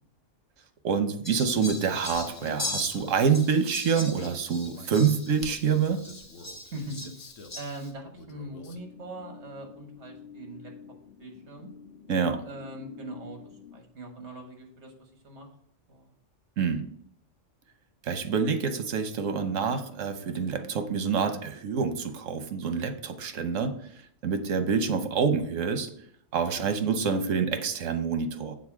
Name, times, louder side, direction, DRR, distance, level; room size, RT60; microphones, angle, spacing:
voice 1, 0.8-6.0 12.1-12.4 16.6-16.9 18.0-23.8 24.2-25.9 26.3-28.5, right 6 dB, 85° right, 8 dB, 1.2 m, -27 dB
Fowl, 1.2-7.9, left 2 dB, 15° left, 1.0 m, -39 dB
Male speech man speaking, 2.1-3.5 4.1-7.6 8.1-8.9, left 3 dB, 80° left, 1.2 m, -48 dB
voice 2, 6.7-7.2 7.5-10.7 11.2-11.7 12.4-13.4 13.7-15.5 15.9-16.1 26.5-26.9, right 1 dB, 60° right, 3 dB, 1.8 m, -41 dB
sound 1, 8.7-13.7, left 7 dB, 55° left, 1.5 m, -49 dB
7.5 x 4.0 x 6.0 m, 0.66 s
omnidirectional pair, 1.3 m